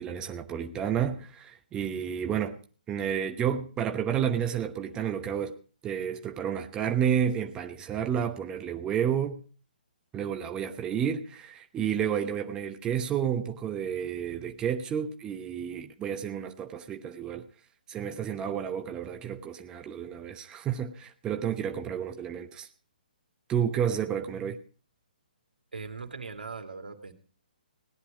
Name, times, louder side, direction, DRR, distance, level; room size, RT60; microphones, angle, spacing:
voice 1, 0.0-2.6 2.9-5.5 5.8-9.4 10.1-17.5 17.9-22.7 23.5-24.6, right 8 dB, 15° right, 1.0 m, -31 dB
voice 2, 25.7-27.1, right 4 dB, 85° right, 2.6 m, -40 dB
17.5 x 10.0 x 5.0 m
figure-of-eight pair, 140°, 5 cm